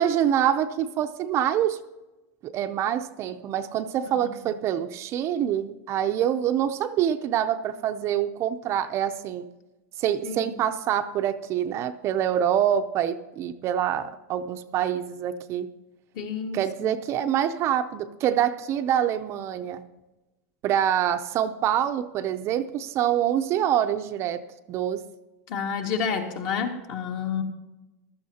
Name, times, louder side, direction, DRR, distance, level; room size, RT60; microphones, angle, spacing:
voice 1, 0.0-1.8 2.4-9.5 10.0-15.7 16.5-19.8 20.6-24.4 24.7-25.0, right 10 dB, 35° right, 8 dB, 0.5 m, -25 dB
voice 2, 16.1-16.9 25.5-27.4, left 6 dB, 45° left, 4 dB, 1.8 m, -30 dB
15.0 x 12.5 x 2.8 m, 1.1 s
supercardioid pair, 150°, 8 cm